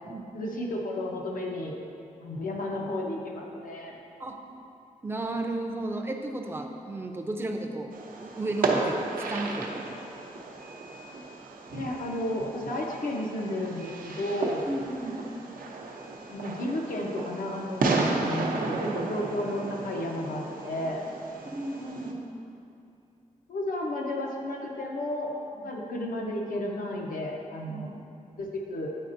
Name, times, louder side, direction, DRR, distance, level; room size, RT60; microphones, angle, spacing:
voice 1, 0.3-1.7 2.2-4.0 11.7-14.7 16.3-21.0 23.5-25.3 25.6-27.9 28.4-29.0, left 1 dB, 80° left, -1 dB, 0.8 m, -32 dB
voice 2, 5.0-7.9 8.2-9.8 14.7-15.2 21.5-22.4 25.6-25.7 27.7-28.0, right 2 dB, 15° right, 3 dB, 0.4 m, -34 dB
Fireworks, 7.9-22.1, right 3 dB, 90° right, 0.6 m, -33 dB
9.1 x 4.2 x 2.6 m, 2.6 s
wide cardioid pair, 135°, 14 cm